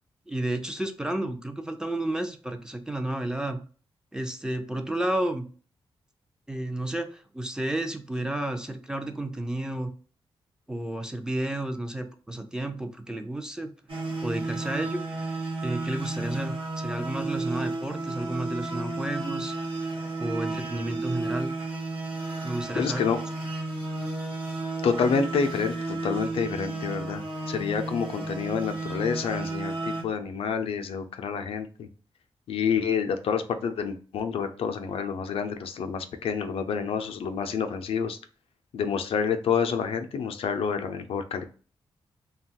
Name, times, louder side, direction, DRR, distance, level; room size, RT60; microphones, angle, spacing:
voice 1, 0.3-3.6 4.1-5.5 6.5-9.9 10.7-13.7 14.2-15.0 15.6-19.5 20.2-21.5 22.4-23.0, right 1 dB, 5° right, 6 dB, 0.4 m, -31 dB
sound 1, 13.9-30.0, right 2 dB, 65° right, 1.1 m, -33 dB
voice 2, 22.8-23.2 24.8-31.9 32.5-38.2 38.7-41.4, left 6 dB, 75° left, 7 dB, 0.4 m, -28 dB
2.9 x 2.2 x 2.7 m, 0.38 s
cardioid pair, 85°, 10 cm